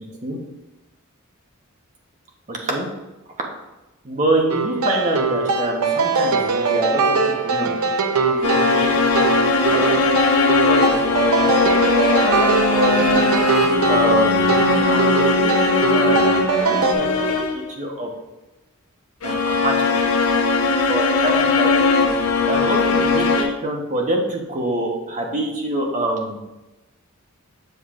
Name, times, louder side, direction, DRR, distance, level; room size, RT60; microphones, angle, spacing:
voice 1, 2.5-2.9 4.0-7.7 8.3-9.3 9.7-13.3 13.8-15.6 15.9-18.1 19.2-20.0 20.9-22.0 22.4-26.4, right 1 dB, 35° right, 0 dB, 1.2 m, -26 dB
sound 1, 4.5-16.9, right 4 dB, 80° right, 0.7 m, -21 dB
sound 2, 8.4-17.7 19.2-23.4, left 4 dB, 80° left, 0.9 m, -19 dB
7.8 x 6.6 x 2.6 m, 1.0 s
head